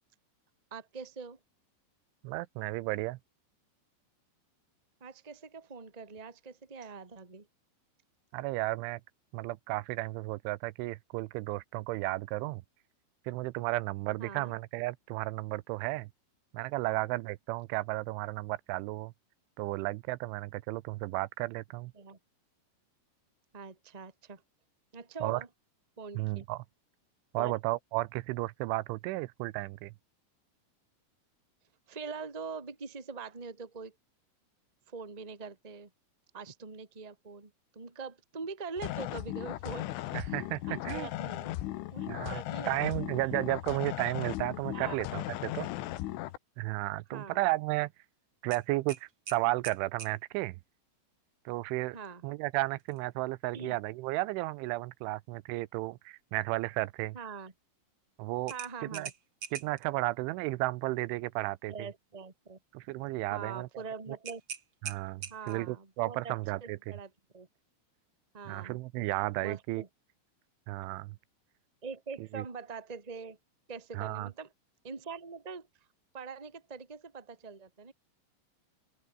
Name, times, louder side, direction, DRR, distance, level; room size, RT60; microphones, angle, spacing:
voice 1, 0.7-1.4 5.0-7.5 14.2-14.5 16.9-17.1 21.9-22.2 23.5-24.4 24.9-25.5 26.0-26.4 27.4-27.5 31.9-33.9 34.9-35.9 36.3-40.4 40.7-41.5 41.9-43.0 44.7-45.0 47.1-47.4 51.9-52.2 53.5-53.7 57.1-57.5 58.5-59.1 61.7-62.6 63.3-64.4 65.3-66.3 66.6-67.5 68.3-68.8 69.4-69.9 71.8-73.4 73.7-74.5 74.8-75.7 76.1-77.9, right 5 dB, 15° right, 1.2 m, -43 dB
voice 2, 2.2-3.2 8.3-9.0 9.3-12.6 13.3-16.1 16.5-19.1 19.6-21.9 25.2-25.4 26.2-26.6 27.3-29.9 40.1-41.1 42.1-45.7 46.6-47.9 48.4-50.6 51.5-52.0 52.2-57.2 58.2-58.5 58.8-59.1 59.5-61.9 62.7-63.7 64.1-64.2 64.8-66.9 68.5-69.8 70.7-71.2 72.2-72.4 73.9-74.3, right 20 dB, 85° right, 3.1 m, -33 dB
sound 1, 38.8-46.4, left 16 dB, 85° left, 3.7 m, -37 dB
sound 2, 48.5-50.2 52.8-53.0 53.4-53.5 58.5-59.9 64.2-65.7, right 7 dB, 50° right, 1.5 m, -43 dB
open air
omnidirectional pair, 5.5 m